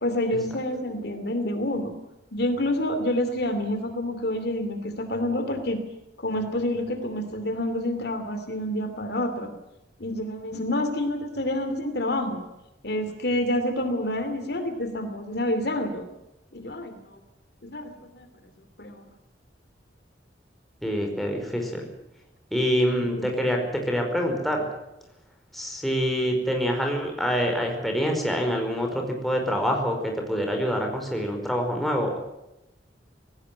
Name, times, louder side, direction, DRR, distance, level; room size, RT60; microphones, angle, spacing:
voice 1, 0.0-1.9 2.3-5.8 6.2-9.5 10.0-12.4 12.8-16.1 16.5-17.2 17.6-18.3 18.8-19.1 23.1-23.3, left 1 dB, 60° left, 8 dB, 2.8 m, -28 dB
voice 2, 20.8-21.8 22.5-23.6 23.9-24.7 25.5-32.2, equal, ahead, 1 dB, 4.9 m, -26 dB
18.5 x 17.5 x 9.2 m, 0.92 s
head